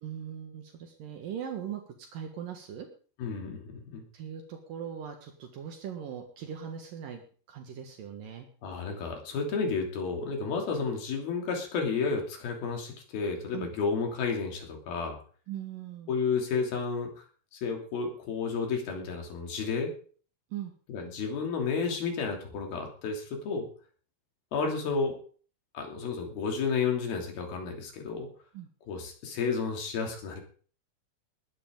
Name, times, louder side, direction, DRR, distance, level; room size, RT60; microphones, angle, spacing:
voice 1, 0.0-2.9 4.1-7.2 7.5-8.5 13.5-13.7 15.5-16.1 20.5-20.7 28.5-28.7, right 8 dB, 70° right, 4 dB, 3.2 m, -40 dB
voice 2, 3.2-4.0 8.6-15.2 16.1-17.1 17.5-19.9 20.9-23.7 24.5-25.2 25.7-28.3 28.9-30.4, left 5 dB, 85° left, 2 dB, 4.8 m, -31 dB
20.0 x 12.0 x 3.8 m, 0.42 s
omnidirectional pair, 4.2 m